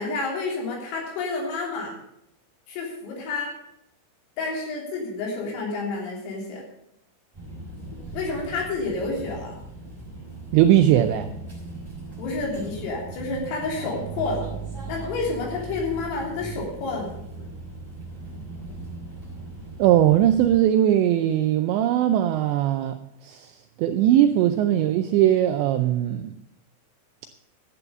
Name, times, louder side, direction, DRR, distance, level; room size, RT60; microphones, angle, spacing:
voice 1, 0.0-1.9 2.7-3.5 4.4-6.6 8.1-9.6 12.2-14.5 14.9-17.2, left 3 dB, 90° left, -2 dB, 5.9 m, -29 dB
sound 1, 7.3-20.6, right 3 dB, 10° right, 4.7 m, -38 dB
voice 2, 10.5-11.3 19.8-26.3, right 11 dB, 85° right, 8 dB, 2.5 m, -20 dB
12.5 x 8.5 x 6.8 m, 0.79 s
omnidirectional pair, 5.8 m